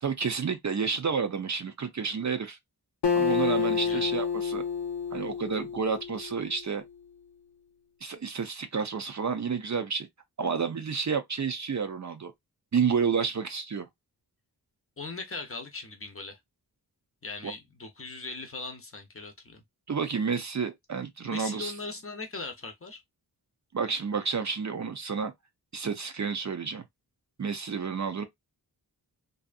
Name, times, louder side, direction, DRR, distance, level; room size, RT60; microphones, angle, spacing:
voice 1, 0.0-2.6 3.1-4.6 5.1-6.8 8.0-10.1 10.4-12.3 12.7-13.9 17.4-17.5 19.9-21.7 23.7-25.3 25.7-26.8 27.4-28.3, right 6 dB, 45° right, 0.5 m, -30 dB
Acoustic guitar, 3.0-6.6, left 6 dB, 80° left, 0.6 m, -29 dB
voice 2, 15.0-16.4 17.2-19.6 21.2-23.0, left 3 dB, 35° left, 0.7 m, -39 dB
2.6 x 2.4 x 2.4 m
wide cardioid pair, 100°, 40 cm